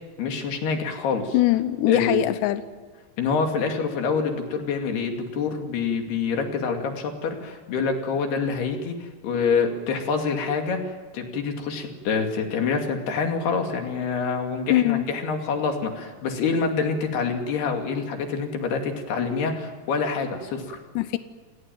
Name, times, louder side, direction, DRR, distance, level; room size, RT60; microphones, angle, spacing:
voice 1, 0.2-1.4 1.9-2.3 3.2-20.8, left 5 dB, 70° left, 4 dB, 4.4 m, -26 dB
voice 2, 1.3-2.6 14.7-15.0 21.0-21.2, left 15 dB, 90° left, 12 dB, 3.1 m, -21 dB
29.0 x 18.0 x 9.2 m, 1.5 s
omnidirectional pair, 4.9 m